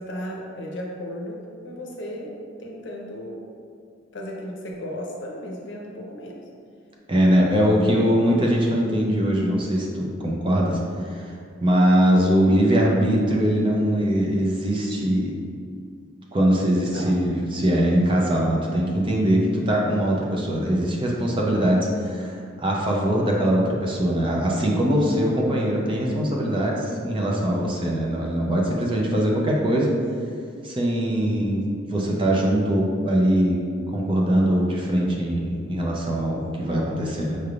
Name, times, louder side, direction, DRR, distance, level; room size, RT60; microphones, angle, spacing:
voice 1, 0.0-3.4 4.1-6.4 7.5-7.9 16.9-17.1, equal, 60° left, -1 dB, 0.7 m, -35 dB
voice 2, 7.1-11.3 11.6-15.3 16.3-29.9 30.6-33.6 33.9-37.4, equal, 25° right, -2 dB, 0.5 m, -22 dB
5.5 x 3.3 x 2.4 m, 2.3 s
head